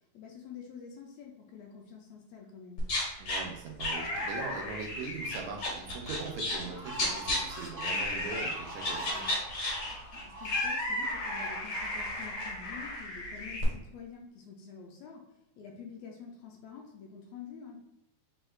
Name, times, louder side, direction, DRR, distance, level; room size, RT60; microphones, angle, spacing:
voice 1, 0.1-2.8 10.1-15.2 15.6-17.8, left 6 dB, 80° left, 0 dB, 1.7 m, -47 dB
sound 1, 2.8-3.4 3.8-6.7 6.9-7.4 7.8-8.5 8.8-13.6, left 1 dB, 60° left, 2.2 m, -33 dB
voice 2, 3.2-9.3, right 4 dB, 80° right, 2 dB, 1.9 m, -41 dB
sound 2, 6.2-11.2, right 1 dB, 30° right, 1.0 m, -43 dB
4.6 x 4.3 x 2.4 m, 0.90 s
omnidirectional pair, 3.6 m